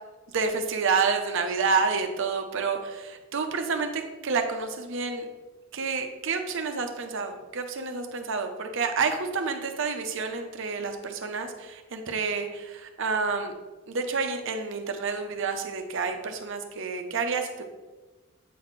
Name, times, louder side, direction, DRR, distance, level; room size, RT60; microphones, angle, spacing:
voice 1, 0.3-5.3 5.7-13.5 13.9-17.6, right 5 dB, 60° right, 5 dB, 0.7 m, -29 dB
8.3 x 4.1 x 3.1 m, 1.2 s
head